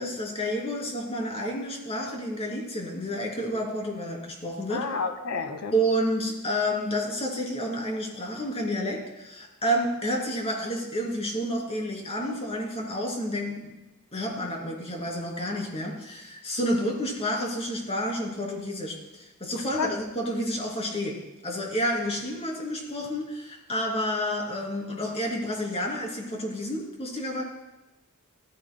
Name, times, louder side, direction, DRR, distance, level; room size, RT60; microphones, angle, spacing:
voice 1, 0.0-4.8 5.7-13.7 14.1-21.2 21.4-27.4, equal, 30° left, -1 dB, 2.8 m, -30 dB
voice 2, 4.7-5.8 19.8-19.9, left 5 dB, 80° left, 6 dB, 1.2 m, -30 dB
15.5 x 14.0 x 2.2 m, 1.0 s
head